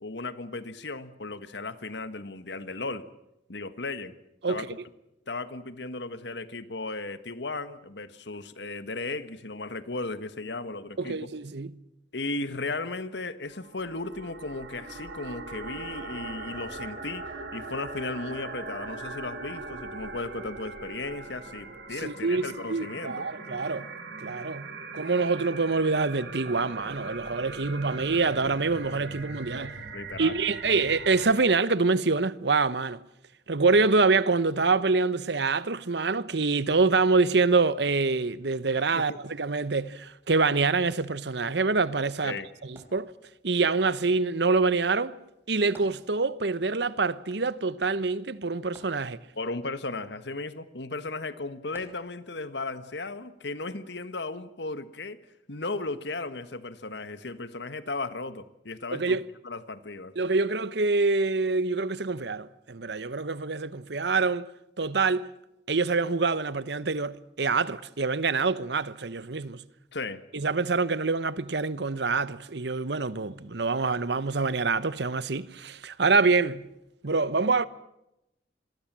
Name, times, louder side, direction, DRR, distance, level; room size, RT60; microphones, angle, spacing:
voice 1, 0.0-3.1 3.5-4.1 4.5-4.8 5.3-11.2 12.1-23.3 29.9-30.4 38.7-39.2 42.2-42.5 49.4-59.2 59.4-60.1 69.9-70.2, left 3 dB, 70° left, 1.5 m, -36 dB
voice 2, 4.4-4.7 11.0-11.7 22.0-23.9 24.2-24.7 24.9-29.8 30.2-33.0 33.5-42.4 42.6-43.1 43.4-45.1 45.5-49.2 58.9-59.2 60.2-64.5 64.8-65.3 65.7-69.6 70.3-76.6 77.0-77.7, right 4 dB, 70° right, 1.0 m, -26 dB
sound 1, 13.5-31.3, right 3 dB, 85° right, 5.0 m, -40 dB
sound 2, 42.8-43.7 45.7-46.6 46.9-47.0 48.8-49.6 51.7-52.5 53.2-53.3, right 1 dB, 15° right, 4.2 m, -53 dB
27.0 x 22.0 x 7.5 m
head